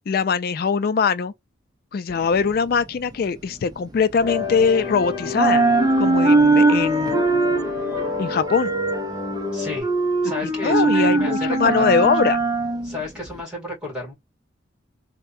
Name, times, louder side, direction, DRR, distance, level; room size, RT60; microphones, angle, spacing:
voice 1, 0.1-1.3 1.9-5.6 6.0-7.2 8.2-8.7 10.4-12.4, left 5 dB, 50° left, 0.3 m, -21 dB
sound 1, 2.1-5.0 5.2-13.4, right 3 dB, 20° right, 0.5 m, -21 dB
sound 2, 4.2-9.8, left 4 dB, 25° left, 0.9 m, -29 dB
voice 2, 9.5-9.9 10.2-12.1 12.8-14.1, left 2 dB, 5° right, 1.8 m, -32 dB
3.4 x 2.1 x 2.4 m
head